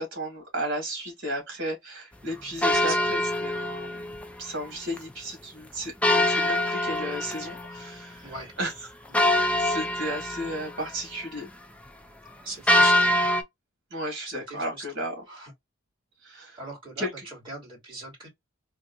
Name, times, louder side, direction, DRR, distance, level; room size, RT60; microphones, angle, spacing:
voice 1, 0.0-4.1 4.4-8.2 8.6-8.7 9.2-11.5 13.9-15.1 16.2-16.6 17.0-17.1, equal, 60° right, 2.0 m, -34 dB
sound 1, 2.6-4.3 4.6-4.7 5.0-5.1 6.0-8.0 8.4-8.5 9.1-10.9 12.7-13.4, left 1 dB, 5° left, 0.4 m, -24 dB
voice 2, 2.7-3.1 8.2-8.5 9.1-9.4 12.4-13.1 14.3-14.8 15.3-15.5 16.6-18.3, right 2 dB, 25° right, 2.5 m, -40 dB
3.5 x 2.6 x 2.6 m
head